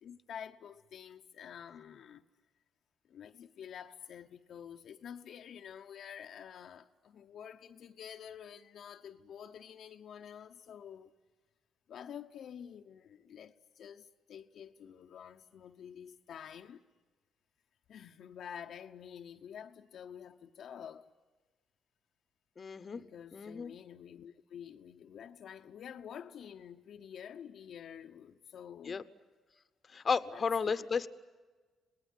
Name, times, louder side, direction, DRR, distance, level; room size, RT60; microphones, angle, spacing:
voice 1, 0.0-2.2 3.1-11.1 11.9-16.8 17.9-21.1 22.9-29.1 30.3-30.9, left 8 dB, 65° left, 0.9 m, -49 dB
voice 2, 22.6-23.0 23.3-23.7 28.8-29.0 29.9-31.1, left 5 dB, 40° left, 1.0 m, -33 dB
27.0 x 19.5 x 9.9 m
cardioid pair, 90°, 0 cm